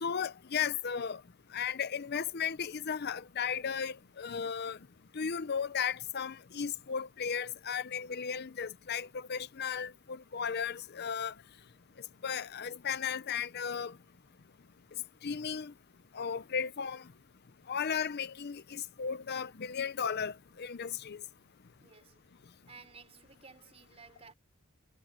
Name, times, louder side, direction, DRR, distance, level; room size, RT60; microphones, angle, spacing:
voice 1, 0.0-1.2 1.5-4.8 5.1-11.3 12.2-14.0 15.2-15.7 16.1-17.0 17.7-21.2, left 7 dB, 50° left, 0.6 m, -35 dB
voice 2, 21.8-22.2 22.7-24.3, right 5 dB, 30° right, 4.2 m, -55 dB
head